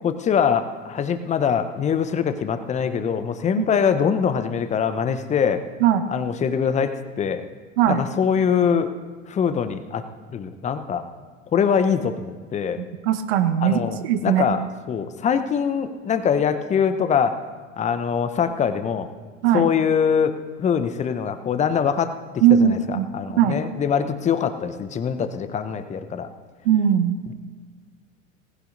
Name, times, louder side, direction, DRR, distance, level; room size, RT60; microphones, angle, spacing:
voice 1, 0.0-5.6 6.1-7.4 7.9-8.9 9.3-10.0 10.3-11.0 11.5-12.8 13.6-14.6 14.9-17.4 17.8-19.1 19.5-22.1 22.5-26.3, left 7 dB, 20° left, 10 dB, 0.8 m, -23 dB
voice 2, 13.0-14.6 19.4-19.7 22.4-23.1 23.4-23.6 26.6-27.2, right 9 dB, 50° right, 10 dB, 0.9 m, -19 dB
19.0 x 16.0 x 2.6 m, 1.4 s
figure-of-eight pair, 80°, 39 cm